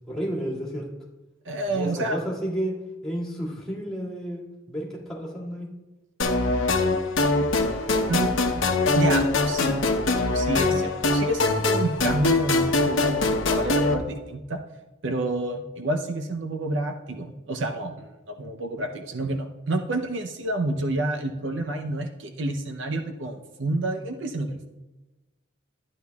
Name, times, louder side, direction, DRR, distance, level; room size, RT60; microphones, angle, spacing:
voice 1, 0.1-0.9 1.7-5.7, equal, 5° left, -6 dB, 2.2 m, -31 dB
voice 2, 1.4-2.2 8.1-8.6 8.9-9.8 10.3-14.6 15.0-24.7, right 2 dB, 65° right, 5 dB, 0.7 m, -29 dB
sound 1, 6.2-13.9, left 2 dB, 70° left, 0.9 m, -23 dB
12.0 x 9.8 x 2.3 m, 1.1 s
head